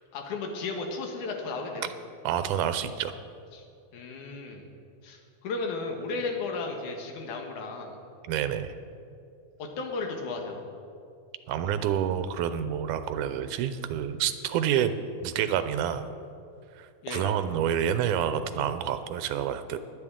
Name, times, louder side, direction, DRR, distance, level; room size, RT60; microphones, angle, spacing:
voice 1, 0.1-1.9 3.5-3.6 3.9-4.7 5.0-8.0 9.6-10.7 17.0-17.4, left 3 dB, 80° left, 2 dB, 2.8 m, -34 dB
voice 2, 2.2-3.1 8.3-8.7 11.5-14.9 15.2-16.1 16.8-19.8, right 9 dB, 85° right, 11 dB, 2.2 m, -28 dB
22.5 x 8.6 x 3.7 m, 2.5 s
omnidirectional pair, 3.5 m